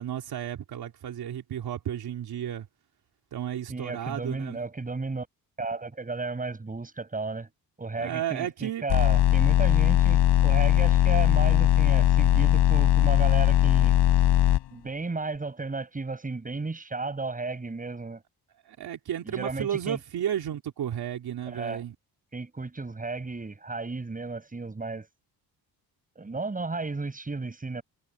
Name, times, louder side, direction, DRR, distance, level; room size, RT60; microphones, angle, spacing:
voice 1, 0.0-2.7 3.3-4.6 8.0-8.9 18.7-22.0, right 10 dB, 65° right, 3.5 m, -33 dB
voice 2, 3.7-5.3 5.6-7.5 7.8-13.9 14.7-18.2 19.2-20.0 21.5-21.8 22.3-25.1 26.2-27.8, right 3 dB, 20° right, 7.6 m, -33 dB
sound 1, 8.9-14.6, left 13 dB, 80° left, 4.8 m, -20 dB
cardioid pair, 115°, 41 cm